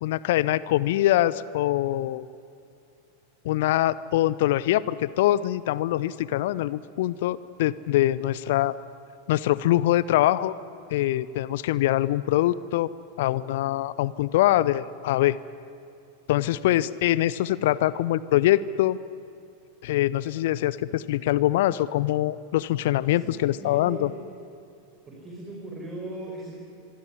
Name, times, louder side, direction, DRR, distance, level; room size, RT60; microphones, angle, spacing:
voice 1, 0.0-2.3 3.4-8.8 9.3-10.5 10.9-12.9 13.2-15.4 16.3-19.0 19.8-24.1, left 14 dB, 55° left, 19 dB, 0.7 m, -23 dB
voice 2, 23.1-24.2 25.1-26.6, right 2 dB, 20° right, -2 dB, 5.8 m, -39 dB
25.0 x 23.0 x 9.8 m, 2.6 s
figure-of-eight pair, 90°, 0 cm